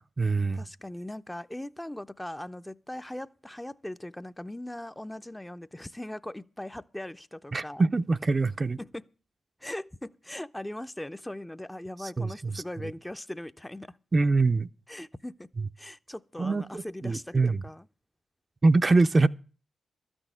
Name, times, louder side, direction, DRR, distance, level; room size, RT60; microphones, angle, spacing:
voice 1, 0.0-0.6 7.5-8.8 12.2-12.6 14.1-14.7 16.4-17.6 18.6-19.3, right 3 dB, 35° right, 0.5 m, -24 dB
voice 2, 0.5-7.8 8.8-9.1 9.6-14.0 14.9-15.5 15.8-17.9, left 1 dB, 10° left, 0.6 m, -40 dB
13.0 x 6.2 x 9.0 m
supercardioid pair, 45°, 0 cm